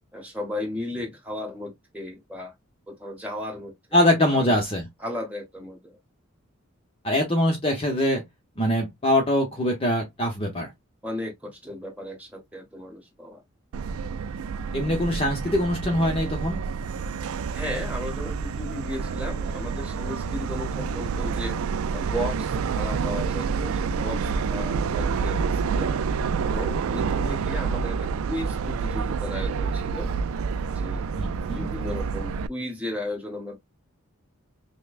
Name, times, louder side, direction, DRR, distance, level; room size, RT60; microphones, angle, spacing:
voice 1, 0.1-2.5 2.9-4.0 4.3-4.6 5.0-6.0 11.0-13.4 17.5-21.6 21.9-25.9 26.4-30.1 30.7-31.1 31.5-33.6, left 1 dB, 5° right, 1.5 m, -35 dB
voice 2, 3.9-4.9 7.0-8.2 8.6-10.7 14.7-16.6 31.2-31.7, left 1 dB, 25° left, 0.8 m, -23 dB
Subway metro underground, 13.7-32.5, right 5 dB, 80° right, 0.3 m, -28 dB
5.6 x 2.2 x 2.4 m
head